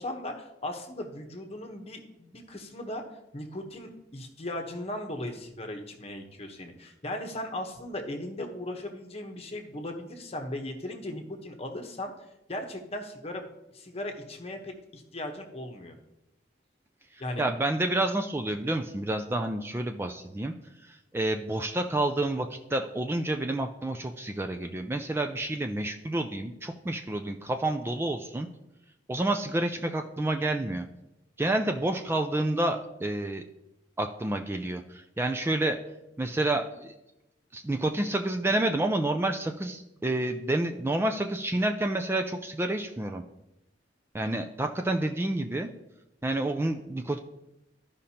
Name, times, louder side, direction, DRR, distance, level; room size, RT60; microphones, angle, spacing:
voice 1, 0.0-3.0 3.3-12.1 12.5-13.5 13.7-15.9 17.2-17.5, left 1 dB, 35° left, 4 dB, 1.0 m, -37 dB
voice 2, 17.4-20.5 20.8-28.5 29.1-30.8 31.4-33.4 34.0-35.8 36.2-36.9 37.5-43.2 44.1-45.7 46.2-47.2, right 1 dB, 15° right, 5 dB, 0.3 m, -29 dB
13.5 x 5.1 x 2.8 m, 0.90 s
head